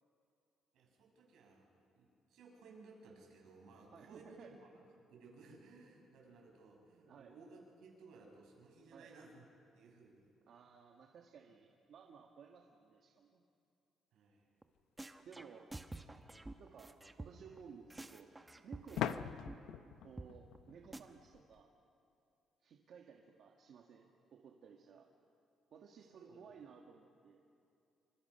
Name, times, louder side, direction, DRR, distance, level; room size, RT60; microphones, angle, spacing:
voice 1, 0.7-1.7 1.9-4.7 5.0-9.4 9.7-10.3 14.1-14.5 18.9-19.1 26.1-26.5, right 3 dB, 75° right, -1 dB, 6.4 m, -59 dB
voice 2, 3.9-4.5 7.0-7.3 8.9-9.1 10.5-13.4 15.2-15.7 16.6-18.3 18.6-19.4 20.0-21.7 22.6-25.1 25.7-27.4, right 6 dB, 55° right, 2 dB, 1.6 m, -57 dB
sound 1, 14.6-14.7 15.0-17.6 17.9-19.2 19.5-19.6 19.8-19.9 20.2-20.3 20.6-20.7 20.9-21.0, right 2 dB, 10° right, 0.9 m, -49 dB
sound 2, 19.0-21.6, left 10 dB, 85° left, 0.7 m, -42 dB
28.0 x 25.0 x 5.7 m, 2.5 s
cardioid pair, 155°, 0 cm